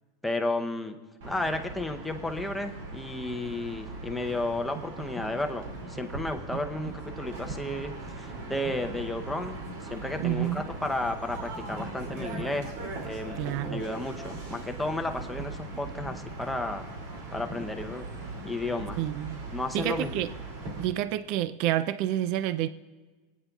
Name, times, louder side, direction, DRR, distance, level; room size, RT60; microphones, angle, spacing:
voice 1, 0.2-1.0 1.2-9.6 9.9-12.7 13.0-13.4 13.6-16.9 17.3-18.1 18.4-19.0 19.5-20.1, left 2 dB, 5° left, 0.7 m, -33 dB
sound 1, 1.2-20.8, right 2 dB, 65° right, 2.6 m, -39 dB
voice 2, 6.5-7.0 10.2-10.7 13.4-13.9 19.0-19.4 19.7-20.3 20.8-22.7, right 13 dB, 50° right, 0.3 m, -29 dB
23.0 x 9.1 x 2.3 m
supercardioid pair, 155°, 0 cm